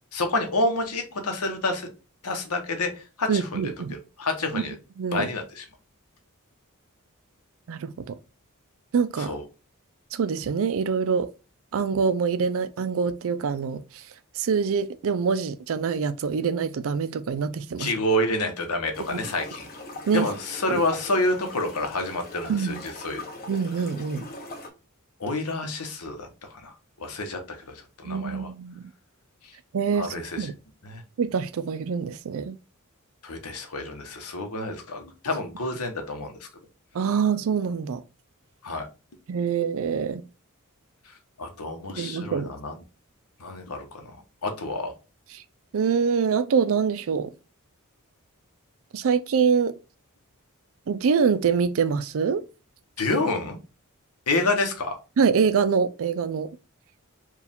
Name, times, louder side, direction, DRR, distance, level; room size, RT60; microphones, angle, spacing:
voice 1, 0.1-1.9 2.2-3.6 3.9-4.8 5.1-5.6 9.2-9.4 17.8-19.7 20.1-23.2 25.2-28.5 29.9-30.5 30.8-31.0 33.2-36.5 38.6-38.9 41.1-42.8 43.4-44.2 44.4-44.9 53.0-53.6 54.3-55.0, left 2 dB, 85° left, 1.0 m, -28 dB
voice 2, 3.3-3.9 4.5-4.6 5.0-5.3 7.7-8.2 8.9-9.3 10.1-11.3 11.7-13.8 14.4-17.9 19.1-19.2 20.1-20.3 20.7-20.8 22.5-22.8 23.5-24.3 28.0-28.9 29.7-30.5 31.2-32.6 36.9-38.0 39.3-40.2 42.0-42.5 45.3-45.4 45.7-47.3 48.9-49.7 50.9-52.4 55.2-56.5, right 6 dB, 65° right, 0.4 m, -25 dB
sound 1, 18.9-24.7, left 2 dB, 40° left, 1.1 m, -41 dB
4.6 x 2.4 x 3.5 m
head